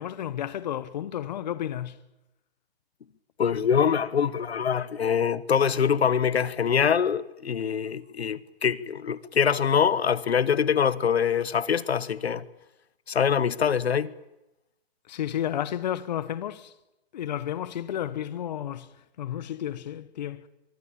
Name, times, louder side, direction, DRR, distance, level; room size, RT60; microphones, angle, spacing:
voice 1, 0.0-2.0 15.1-16.7 17.1-20.5, left 11 dB, 45° left, 1.2 m, -32 dB
voice 2, 3.4-12.4 13.1-14.1, left 7 dB, 80° left, 1.5 m, -24 dB
24.0 x 23.0 x 8.8 m
hypercardioid pair, 160°, 31 cm